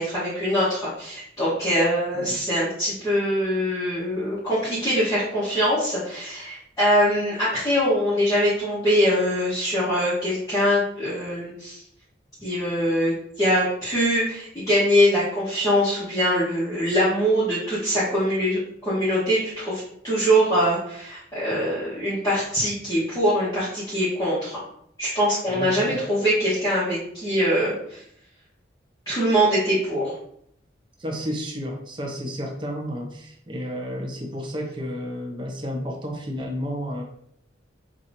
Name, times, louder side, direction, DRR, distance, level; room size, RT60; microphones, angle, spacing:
voice 1, 0.0-11.8 12.4-24.6 25.0-28.0 29.1-30.1, equal, 20° left, -12 dB, 1.1 m, -23 dB
voice 2, 25.5-26.0 31.0-37.0, equal, 25° right, 1 dB, 0.6 m, -32 dB
4.8 x 2.8 x 2.6 m, 0.69 s
head